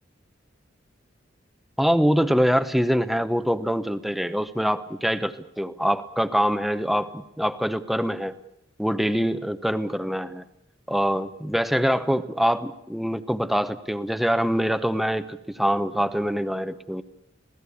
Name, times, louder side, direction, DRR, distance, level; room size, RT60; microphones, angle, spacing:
voice 1, 1.8-8.3 8.8-10.4 10.9-17.0, equal, ahead, 11 dB, 1.0 m, -24 dB
26.5 x 17.5 x 8.6 m, 0.81 s
head